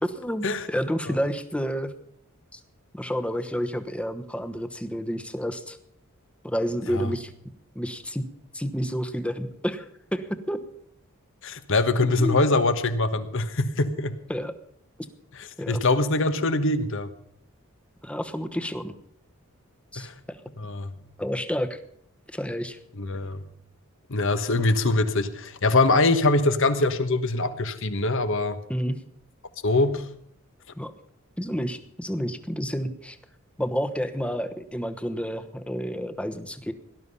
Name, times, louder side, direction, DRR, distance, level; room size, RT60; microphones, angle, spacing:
voice 1, 0.0-1.9 2.5-2.6 2.9-5.8 6.4-7.3 7.7-8.3 8.5-10.6 12.2-12.4 14.3-14.5 15.6-15.8 18.0-18.9 19.9-20.4 21.2-21.8 22.3-22.8 28.7-29.0 30.7-30.9 31.4-33.2 33.6-36.7, equal, 5° left, 9 dB, 1.0 m, -30 dB
voice 2, 11.4-14.2 15.7-17.1 20.0-20.1 20.6-20.9 23.0-23.4 24.1-28.6 29.6-30.1, left 2 dB, 65° left, 10 dB, 1.3 m, -23 dB
18.0 x 12.0 x 5.6 m, 0.69 s
head